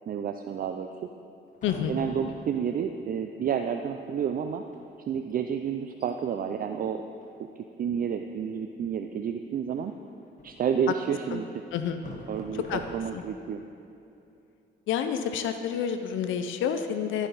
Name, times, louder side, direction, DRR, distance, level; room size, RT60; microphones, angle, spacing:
voice 1, 0.1-0.9 1.9-4.6 5.1-7.0 7.8-9.9 10.4-11.5 12.3-13.6, right 7 dB, 45° right, 6 dB, 0.4 m, -30 dB
sound 1, 1.5-2.7 3.6-3.7 3.9-4.3 4.6-4.8 5.3-5.4 5.8-6.1 7.2-7.8 9.8-10.7 11.7-13.3, left 2 dB, 40° left, 1.4 m, -46 dB
voice 2, 1.6-2.0 11.3-11.4 11.7-12.0 12.7-12.8 13.1-13.2 14.9-17.3, left 8 dB, 80° left, 8 dB, 0.5 m, -29 dB
12.5 x 5.6 x 4.1 m, 2.7 s
cardioid pair, 90°, 20 cm